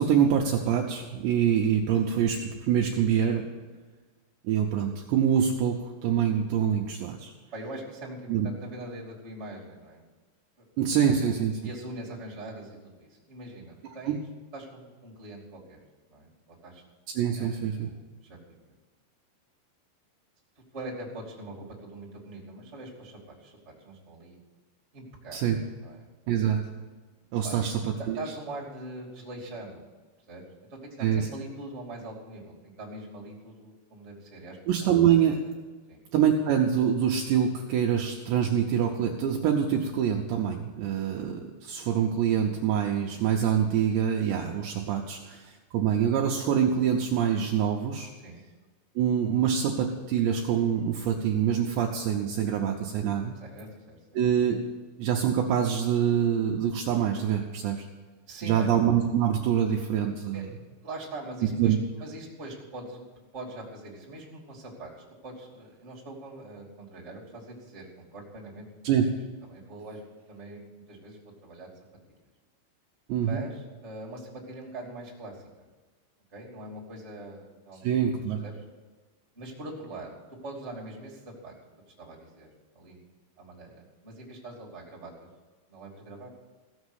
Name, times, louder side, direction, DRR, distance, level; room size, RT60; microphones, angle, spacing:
voice 1, 0.0-3.4 4.4-7.3 8.3-8.5 10.8-11.6 14.1-14.2 17.2-17.9 25.3-25.6 26.3-26.6 27.3-28.2 31.0-31.3 34.7-35.4 36.1-48.1 49.0-53.4 54.1-54.6 55.0-57.9 58.4-60.5 61.6-61.8 68.8-69.1 73.1-73.4 77.8-78.4, right 8 dB, 75° right, 1 dB, 2.7 m, -25 dB
voice 2, 7.5-10.0 10.6-10.7 11.6-14.2 14.5-15.8 16.1-16.3 16.6-16.8 17.3-17.5 17.8-18.6 20.7-24.4 24.9-25.4 25.8-26.1 27.4-27.7 28.0-29.8 30.3-30.4 30.7-34.6 35.9-36.0 48.2-48.4 53.3-54.0 58.3-58.7 60.3-60.4 60.8-63.0 63.3-64.9 65.2-68.7 69.4-71.7 73.2-75.7 76.3-77.9 78.4-78.6 79.3-80.1 80.4-81.5 82.0-82.5 82.7-83.0 83.4-85.3 85.7-86.3, right 2 dB, 20° right, -3 dB, 2.0 m, -42 dB
15.5 x 7.2 x 8.1 m, 1.3 s
omnidirectional pair, 5.8 m